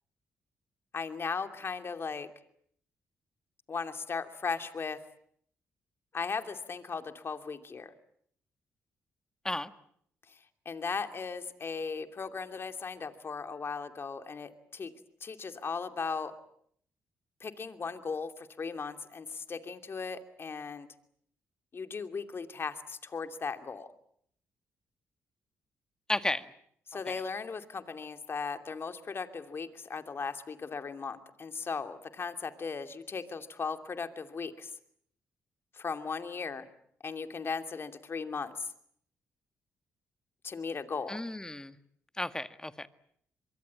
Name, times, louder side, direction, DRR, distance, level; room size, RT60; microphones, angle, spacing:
voice 1, 0.9-2.3 3.7-5.0 6.1-7.9 10.6-14.9 15.2-16.3 17.4-20.9 21.7-23.9 26.9-34.7 35.7-36.7 37.0-38.7 40.4-41.2, left 5 dB, 45° left, 8 dB, 2.8 m, -37 dB
voice 2, 26.1-26.5 27.1-27.2 41.1-41.8 42.2-42.9, left 1 dB, 10° left, 11 dB, 1.8 m, -33 dB
24.5 x 23.0 x 8.7 m, 0.66 s
supercardioid pair, 60°, 6 cm